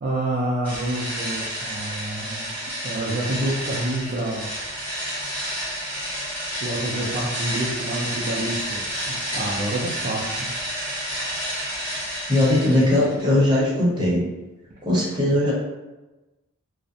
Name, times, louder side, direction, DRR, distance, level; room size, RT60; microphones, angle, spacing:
voice 1, 0.0-2.5 2.8-4.5 6.6-10.5, right 1 dB, 40° right, -6 dB, 0.4 m, -28 dB
sound 1, 0.6-13.3, equal, 10° left, 0.9 m, -30 dB
voice 2, 12.3-14.2 14.8-15.5, left 1 dB, 20° right, -7 dB, 0.7 m, -19 dB
2.5 x 2.0 x 2.6 m, 1.1 s
head